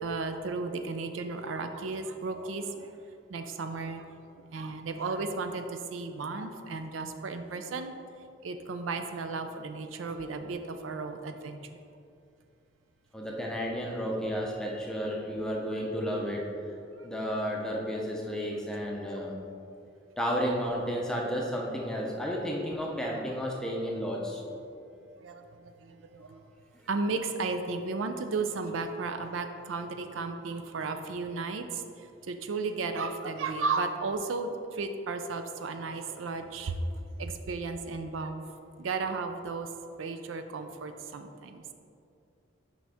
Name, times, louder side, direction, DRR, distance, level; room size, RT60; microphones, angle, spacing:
voice 1, 0.0-2.9 3.3-4.1 4.5-7.9 8.4-11.6 17.2-17.3 25.2-26.4 26.9-31.8 32.2-38.4 38.8-39.7 40.0-41.6, right 3 dB, 80° right, 8 dB, 0.4 m, -34 dB
voice 2, 13.1-16.5 17.0-19.3 20.2-24.4, equal, 5° left, -2 dB, 0.6 m, -32 dB
6.2 x 5.4 x 3.5 m, 2.5 s
head